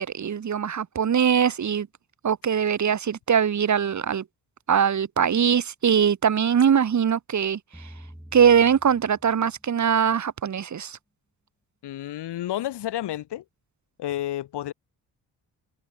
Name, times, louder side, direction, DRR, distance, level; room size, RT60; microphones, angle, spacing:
voice 1, 0.0-1.9 2.2-4.2 4.7-7.6 8.3-11.0, right 7 dB, 45° right, 1.1 m, -22 dB
sound 1, 7.7-10.0, equal, 5° right, 3.7 m, -47 dB
voice 2, 11.8-13.4 14.0-14.7, left 13 dB, 75° left, 1.7 m, -30 dB
supercardioid pair, 55°, 41 cm